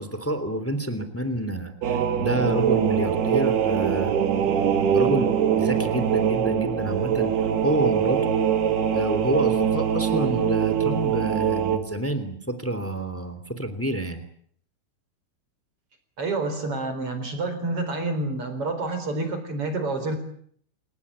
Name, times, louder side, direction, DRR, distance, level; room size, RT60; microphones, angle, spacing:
voice 1, 0.0-4.1 4.9-7.3 7.6-8.2 8.9-14.2, right 1 dB, 5° left, 11 dB, 1.5 m, -28 dB
sound 1, 1.8-11.8, right 8 dB, 60° right, 3.9 m, -23 dB
voice 2, 16.2-20.2, right 2 dB, 30° right, 9 dB, 4.6 m, -28 dB
28.5 x 18.5 x 8.8 m, 0.63 s
omnidirectional pair, 5.8 m